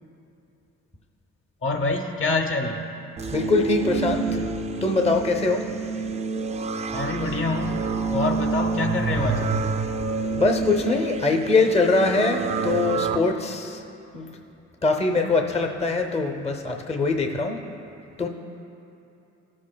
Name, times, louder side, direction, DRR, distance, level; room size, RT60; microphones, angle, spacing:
voice 1, 1.6-2.9 6.9-7.8 8.1-9.6, left 3 dB, 45° left, 4 dB, 1.0 m, -26 dB
sound 1, 3.2-13.2, right 4 dB, 20° right, 0.4 m, -28 dB
voice 2, 3.3-4.4 4.8-5.7 10.4-13.8 14.1-14.3 14.8-17.6 18.2-18.3, left 3 dB, 20° left, 4 dB, 0.7 m, -23 dB
16.0 x 7.5 x 2.3 m, 2.8 s
cardioid pair, 90°, 30 cm